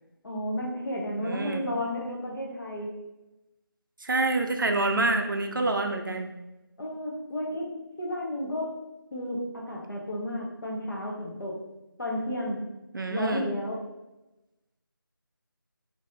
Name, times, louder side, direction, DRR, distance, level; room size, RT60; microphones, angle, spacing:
voice 1, 0.2-2.9 6.8-7.7 8.0-8.8 9.1-11.6 12.0-12.6 13.1-13.8, left 1 dB, 60° left, -3 dB, 1.1 m, -32 dB
voice 2, 1.2-1.7 4.0-6.4 12.9-13.4, right 2 dB, 60° right, 4 dB, 0.5 m, -27 dB
3.2 x 2.7 x 3.7 m, 0.99 s
figure-of-eight pair, 165°, 12 cm